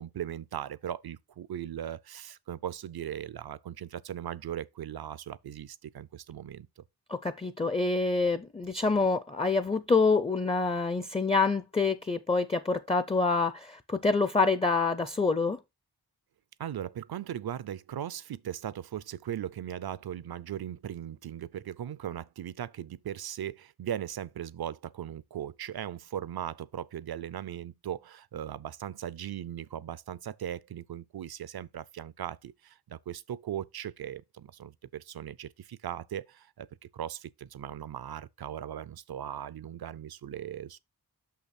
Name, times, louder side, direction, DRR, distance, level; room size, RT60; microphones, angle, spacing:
voice 1, 0.0-6.8 16.6-36.7 36.9-40.8, right 10 dB, 70° right, 0.5 m, -38 dB
voice 2, 7.1-15.6, left 4 dB, 15° left, 0.4 m, -26 dB
6.3 x 5.7 x 4.2 m
wide cardioid pair, 90°, 39 cm